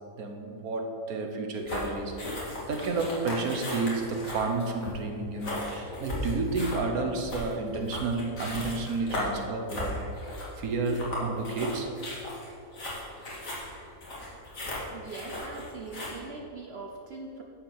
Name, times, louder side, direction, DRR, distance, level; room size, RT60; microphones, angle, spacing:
voice 1, 0.2-10.0 10.6-11.9 13.4-13.6, right 3 dB, 80° right, 4 dB, 1.6 m, -31 dB
sound 1, 1.6-16.1, left 1 dB, 65° left, 2.8 m, -36 dB
voice 2, 14.8-17.4, right 3 dB, 50° right, 0 dB, 1.0 m, -41 dB
11.0 x 4.9 x 7.2 m, 2.5 s
omnidirectional pair, 1.5 m